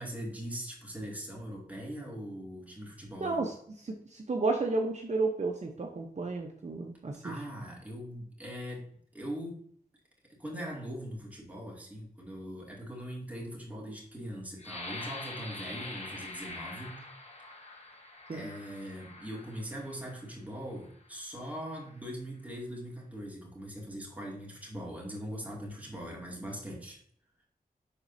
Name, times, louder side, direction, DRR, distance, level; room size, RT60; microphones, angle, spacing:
voice 1, 0.0-3.4 7.2-8.9 9.1-9.6 10.3-17.0 17.3-17.4 18.3-27.0, equal, 10° right, -3 dB, 2.4 m, -41 dB
voice 2, 3.2-3.5 3.9-7.3 18.3-18.5, right 3 dB, 50° right, 2 dB, 0.8 m, -32 dB
sound 1, 14.6-20.2 20.9-21.1 21.5-22.0, left 2 dB, 45° left, 1.2 m, -44 dB
11.0 x 4.1 x 2.7 m, 0.62 s
wide cardioid pair, 90°, 15 cm